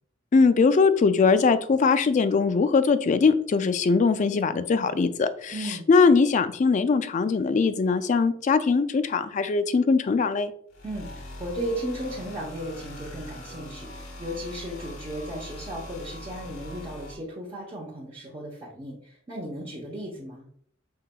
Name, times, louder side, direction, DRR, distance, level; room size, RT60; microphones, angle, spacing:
voice 1, 0.3-10.5, left 4 dB, 35° left, 12 dB, 0.3 m, -21 dB
voice 2, 5.5-5.8 10.8-20.5, right 1 dB, 25° right, -4 dB, 0.8 m, -35 dB
sound 1, 10.7-17.1, left 1 dB, 75° left, 1.2 m, -41 dB
5.6 x 3.8 x 2.2 m, 0.63 s
head